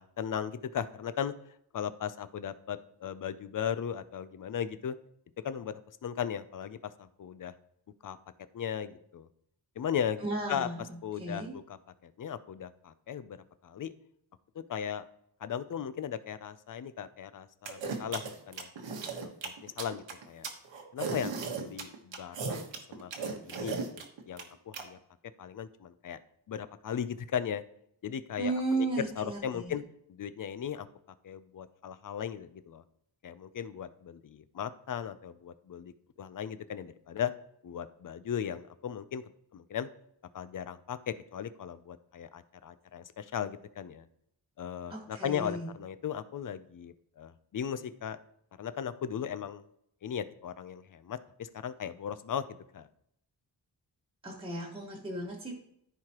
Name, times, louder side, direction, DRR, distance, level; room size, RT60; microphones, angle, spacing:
voice 1, 0.0-1.3 1.7-4.9 5.4-7.5 8.0-8.2 8.5-9.3 9.8-10.2 10.5-10.7 11.0-11.8 12.0-13.4 13.6-13.9 14.5-15.0 15.4-18.7 19.2-20.5 20.9-25.0 25.4-26.2 26.5-27.6 28.0-29.8 30.1-30.9 31.2-32.8 33.2-37.3 37.6-39.2 39.5-39.9 40.3-44.1 44.6-48.2 48.6-49.6 50.0-52.9, left 8 dB, 50° left, 13 dB, 0.5 m, -37 dB
voice 2, 10.2-11.6 28.4-29.8 44.9-45.7 54.2-55.6, right 2 dB, 10° right, -3 dB, 1.4 m, -35 dB
sound 1, 17.7-24.8, right 4 dB, 90° right, 1.3 m, -36 dB
14.0 x 4.8 x 3.0 m, 0.74 s
wide cardioid pair, 160°, 43 cm